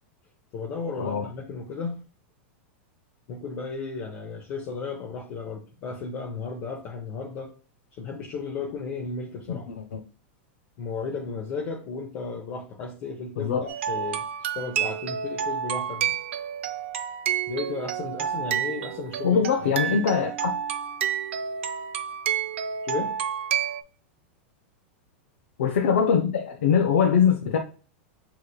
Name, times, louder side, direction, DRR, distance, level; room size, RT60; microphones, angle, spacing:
voice 1, 0.5-2.0 3.3-7.5 8.0-9.7 10.8-16.2 17.5-19.8 22.8-23.1, left 4 dB, 35° left, 0.7 m, -34 dB
voice 2, 9.5-10.0 13.4-13.7 19.2-20.5 25.6-27.6, left 7 dB, 85° left, 0.6 m, -22 dB
sound 1, 13.7-23.8, right 9 dB, 85° right, 0.5 m, -29 dB
6.4 x 3.0 x 2.3 m
supercardioid pair, 170°, 6 cm